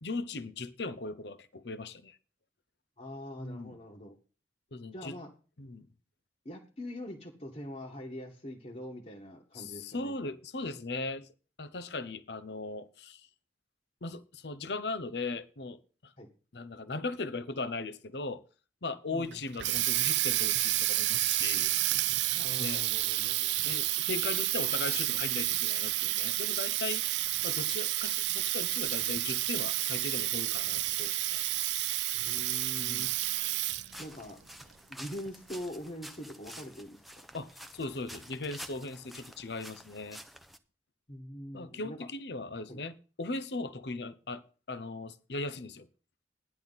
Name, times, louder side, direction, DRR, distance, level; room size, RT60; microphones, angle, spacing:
voice 1, 0.0-2.2 3.4-3.8 4.7-5.2 5.6-5.9 9.5-11.3 11.6-13.3 14.0-16.1 16.5-18.4 18.8-21.7 22.6-22.8 23.7-27.1 27.4-31.5 32.8-33.1 37.3-40.2 41.5-45.9, left 3 dB, 65° left, 0.9 m, -38 dB
voice 2, 3.0-4.2 4.9-5.3 6.5-10.1 16.2-16.3 19.1-19.4 22.3-23.5 32.1-33.1 34.0-34.4 34.9-37.0 41.1-42.1 42.7-42.8, left 1 dB, 40° left, 1.7 m, -43 dB
Water tap faucet, 19.3-34.0, right 16 dB, 80° right, 0.5 m, -30 dB
sound 1, 33.9-40.6, equal, ahead, 0.8 m, -49 dB
14.0 x 10.5 x 4.1 m
head